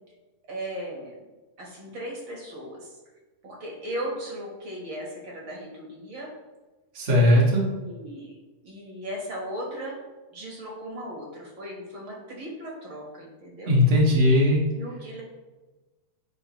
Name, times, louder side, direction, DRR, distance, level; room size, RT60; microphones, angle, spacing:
voice 1, 0.5-1.1 1.6-3.0 3.4-6.3 7.2-8.3 8.6-10.0 10.3-13.7 14.7-15.2, right 1 dB, 45° right, -2 dB, 1.7 m, -37 dB
voice 2, 6.9-7.6 13.7-14.6, left 1 dB, 80° right, -4 dB, 0.5 m, -18 dB
9.3 x 4.3 x 3.1 m, 1.2 s
omnidirectional pair, 3.7 m